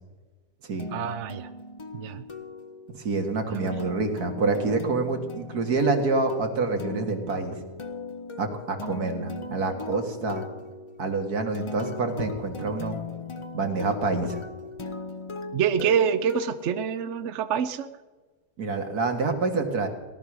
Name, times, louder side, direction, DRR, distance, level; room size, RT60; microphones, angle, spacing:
sound 1, 0.8-17.5, left 3 dB, 35° left, 0.4 m, -39 dB
voice 1, 0.9-1.5 1.9-2.3 3.5-3.7 15.5-17.9, right 8 dB, 60° right, 11 dB, 0.9 m, -26 dB
voice 2, 3.0-7.6 8.4-10.5 11.0-13.0 13.5-14.4 18.6-19.9, right 3 dB, 75° right, 4 dB, 2.3 m, -27 dB
18.0 x 11.5 x 6.1 m, 1.3 s
omnidirectional pair, 1.6 m